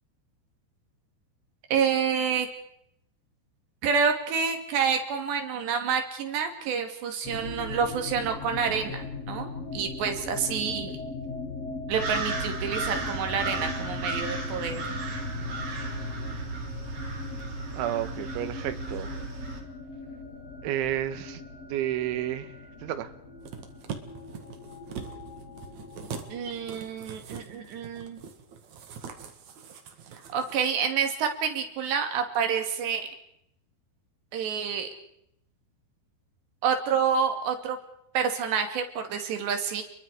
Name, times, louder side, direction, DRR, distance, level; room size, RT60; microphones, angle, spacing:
voice 1, 1.7-2.5 3.8-11.0 11.9-15.0 26.3-28.2 30.3-33.1 34.3-34.9 36.6-37.8 38.1-39.8, right 6 dB, 70° right, 5 dB, 4.5 m, -28 dB
sound 1, 7.2-27.1, left 3 dB, 40° left, 3.4 m, -40 dB
sound 2, 11.9-19.6, right 2 dB, 35° right, 3.8 m, -34 dB
voice 2, 17.7-19.2 20.6-21.4 21.7-22.5 22.8-23.1, right 12 dB, 85° right, 11 dB, 3.7 m, -31 dB
sound 3, 23.4-30.6 30.9-31.0, right 6 dB, 50° right, 2.4 m, -42 dB
30.0 x 22.5 x 4.9 m, 0.75 s
omnidirectional pair, 5.3 m